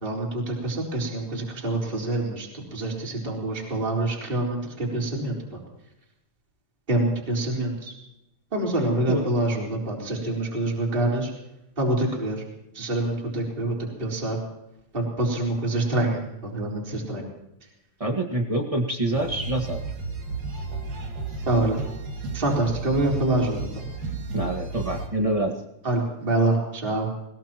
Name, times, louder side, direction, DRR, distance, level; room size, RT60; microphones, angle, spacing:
voice 1, 0.0-5.6 6.9-7.9 8.5-11.3 11.8-12.4 12.7-14.4 14.9-17.3 21.5-21.8 22.3-23.8 25.8-27.1, right 2 dB, 15° right, -2 dB, 4.0 m, -26 dB
voice 2, 18.0-19.8 24.3-25.5, right 1 dB, 35° right, 2 dB, 0.5 m, -26 dB
sound 1, 19.1-25.1, right 3 dB, 70° right, 3.9 m, -33 dB
21.0 x 21.0 x 3.0 m, 0.87 s
omnidirectional pair, 3.8 m